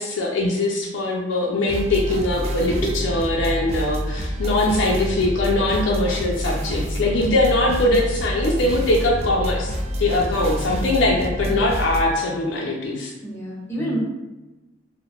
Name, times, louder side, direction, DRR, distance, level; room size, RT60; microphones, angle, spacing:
voice 1, 0.0-13.1, left 2 dB, 80° left, -2 dB, 0.4 m, -22 dB
sound 1, 1.7-12.0, equal, 35° right, 0.3 m, -27 dB
voice 2, 2.3-2.8 13.2-14.0, right 1 dB, 15° left, -5 dB, 0.7 m, -29 dB
2.8 x 2.0 x 2.8 m, 1.1 s
head